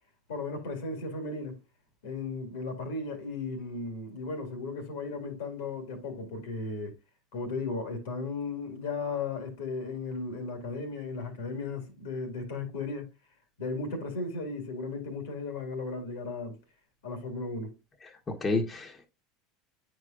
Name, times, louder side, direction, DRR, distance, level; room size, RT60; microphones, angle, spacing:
voice 1, 0.3-1.6 2.0-7.0 7.3-13.1 13.6-16.6 17.0-17.8, left 3 dB, 75° left, 2.0 m, -35 dB
voice 2, 18.0-19.1, left 3 dB, 25° left, 1.3 m, -31 dB
9.2 x 4.8 x 2.5 m
hypercardioid pair, 85°, 0 cm